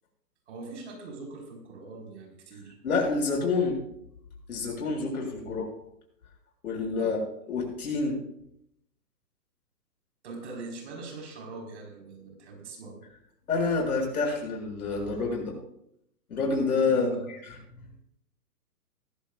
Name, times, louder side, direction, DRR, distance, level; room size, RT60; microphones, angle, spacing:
voice 1, 0.5-2.8 5.2-5.7 7.0-7.2 10.2-13.0 16.9-17.3, right 3 dB, 45° right, 1 dB, 4.6 m, -42 dB
voice 2, 2.8-3.8 4.5-5.7 6.6-7.2 7.5-8.2 13.5-15.5 16.3-17.1, left 4 dB, 65° left, 0 dB, 6.6 m, -27 dB
20.0 x 14.5 x 2.4 m, 0.75 s
hypercardioid pair, 165°, 48 cm